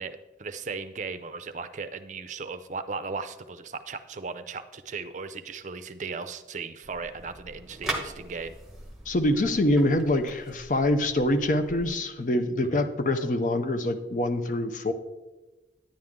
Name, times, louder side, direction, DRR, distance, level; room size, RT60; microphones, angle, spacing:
voice 1, 0.0-8.6 12.6-12.8, right 4 dB, 40° right, 10 dB, 0.5 m, -37 dB
sound 1, 6.8-11.9, right 2 dB, ahead, 1.1 m, -40 dB
voice 2, 9.1-14.9, left 1 dB, 45° left, 8 dB, 0.7 m, -25 dB
10.0 x 9.2 x 3.7 m, 1.1 s
head